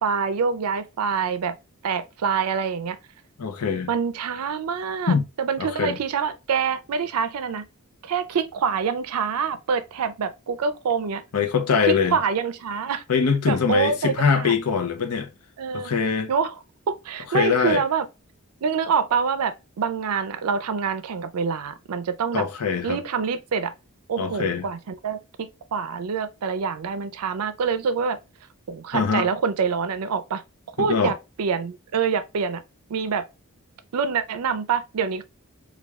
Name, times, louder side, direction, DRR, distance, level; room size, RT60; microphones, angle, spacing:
voice 1, 0.0-1.6 1.8-3.0 3.9-7.7 8.0-11.2 11.8-13.0 13.5-14.5 15.6-16.0 16.3-16.6 16.9-18.1 18.6-22.5 22.8-23.7 24.1-28.2 28.7-30.4 30.8-32.6 32.9-33.2 33.9-35.2, right 6 dB, 80° right, 0.4 m, -26 dB
voice 2, 3.4-3.9 5.1-5.2 5.8-6.0 11.3-12.1 13.1-15.3 15.7-16.3 17.3-17.8 22.3-23.0 24.2-24.6 28.9-29.3 30.8-31.1, left 6 dB, 85° left, 0.6 m, -22 dB
3.4 x 2.3 x 3.1 m
head